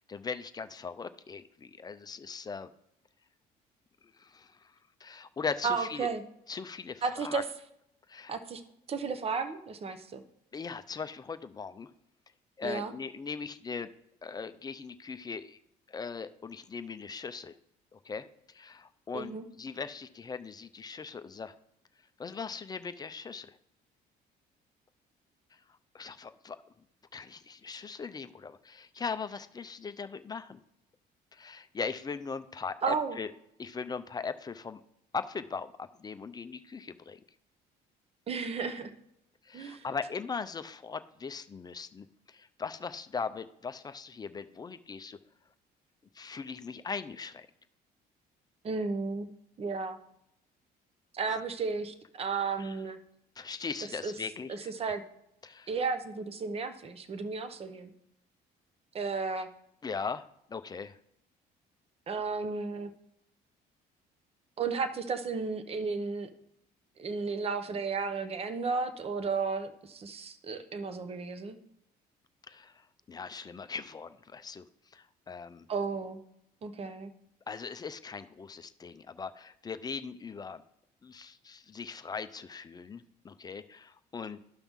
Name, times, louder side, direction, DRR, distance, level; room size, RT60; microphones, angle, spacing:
voice 1, 0.1-2.7 4.2-4.7 5.0-6.1 6.5-7.4 8.1-8.4 10.5-11.9 12.6-13.9 14.2-15.6 15.9-17.5 17.9-21.5 22.2-23.6 25.9-26.6 27.1-30.6 31.3-33.3 33.6-34.8 35.1-37.2 39.4-45.2 46.1-47.5 51.3-51.4 52.6-52.8 53.4-54.7 55.4-55.7 59.8-61.0 72.5-72.8 73.1-74.6 74.9-75.7 77.5-80.6 81.0-84.4, left 5 dB, 25° left, 11 dB, 0.5 m, -39 dB
voice 2, 5.6-6.2 7.0-7.4 8.3-8.6 8.9-10.2 12.6-12.9 19.1-19.4 32.8-33.2 38.3-38.9 39.5-39.9 48.6-49.3 49.6-50.0 51.1-53.0 54.0-54.1 54.5-55.0 55.7-57.9 58.9-59.5 62.1-62.9 64.6-66.3 67.0-71.6 75.7-76.2 76.6-77.1, right 4 dB, 35° right, 10 dB, 0.8 m, -33 dB
12.0 x 5.8 x 3.6 m, 0.78 s
cardioid pair, 110°, 17 cm